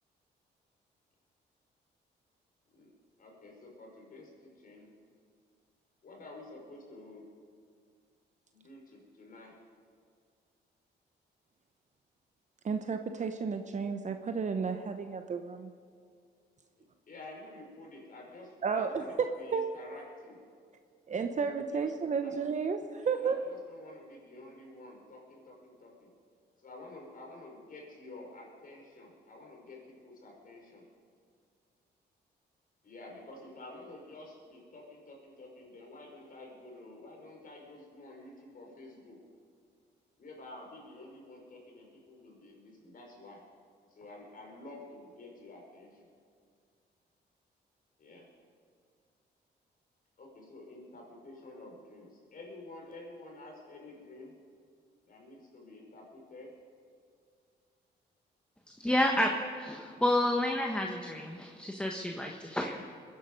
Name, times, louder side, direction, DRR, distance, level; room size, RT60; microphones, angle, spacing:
voice 1, 3.2-4.9 6.0-7.2 8.5-9.5 16.8-20.4 21.7-21.9 22.2-22.3 22.9-26.1 26.6-30.8 32.8-39.2 40.2-43.4 43.9-46.1 48.0-48.3 50.2-54.3 55.1-56.5, left 2 dB, 50° left, -1 dB, 5.0 m, -50 dB
voice 2, 12.6-15.7 18.6-19.0 19.5-19.7 21.1-23.4, right 5 dB, 45° right, 7 dB, 0.9 m, -32 dB
voice 3, 58.8-62.9, left 1 dB, 5° left, 1 dB, 1.4 m, -30 dB
22.0 x 10.5 x 5.3 m, 2.2 s
cardioid pair, 90°, 18 cm